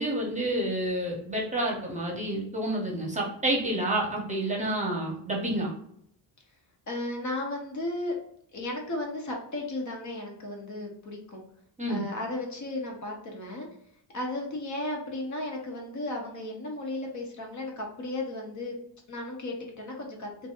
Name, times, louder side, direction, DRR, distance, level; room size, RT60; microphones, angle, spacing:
voice 1, 0.0-5.7 11.8-12.0, right 1 dB, 15° right, -1 dB, 0.8 m, -29 dB
voice 2, 6.9-8.2 8.5-11.4 11.9-13.7 14.1-18.7 19.1-20.3, left 2 dB, 40° left, 0 dB, 0.9 m, -35 dB
4.4 x 2.5 x 2.5 m, 0.70 s
cardioid pair, 130°, 43 cm